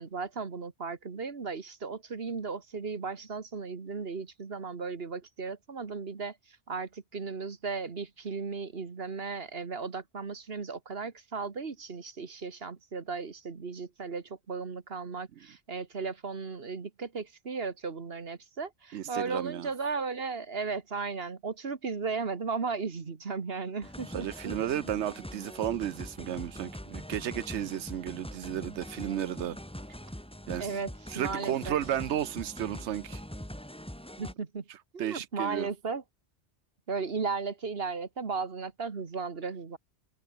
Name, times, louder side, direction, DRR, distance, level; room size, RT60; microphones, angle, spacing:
voice 1, 0.0-24.6 30.6-31.8 34.2-34.6 34.9-36.0 36.9-39.8, right 4 dB, 60° right, 1.8 m, -36 dB
voice 2, 18.9-19.7 24.1-29.6 30.5-30.7 31.1-33.2 35.0-35.7, right 11 dB, 85° right, 1.0 m, -33 dB
sound 1, 23.8-34.3, equal, 5° left, 2.2 m, -43 dB
omnidirectional pair, 1.1 m